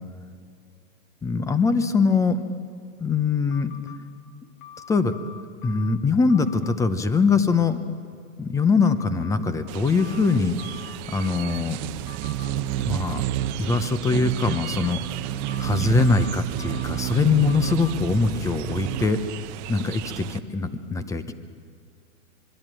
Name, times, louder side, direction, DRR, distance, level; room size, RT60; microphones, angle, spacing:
voice 1, 1.2-2.4 3.0-3.7 4.9-5.1 5.6-7.8 8.4-10.6 11.1-11.8 12.8-13.3 13.6-15.0 15.6-19.2 19.7-21.3, left 4 dB, 10° left, 12 dB, 0.7 m, -22 dB
sound 1, 3.5-4.0 4.6-6.0 6.3-6.8 8.8-9.4 10.0-11.6 12.1-12.5 14.5-15.0 15.5-17.0 17.5-17.9, left 9 dB, 80° left, 3.6 m, -44 dB
sound 2, 9.7-20.4, right 13 dB, 35° right, 0.8 m, -30 dB
25.0 x 22.0 x 9.0 m, 2.3 s
hypercardioid pair, 145°, 41 cm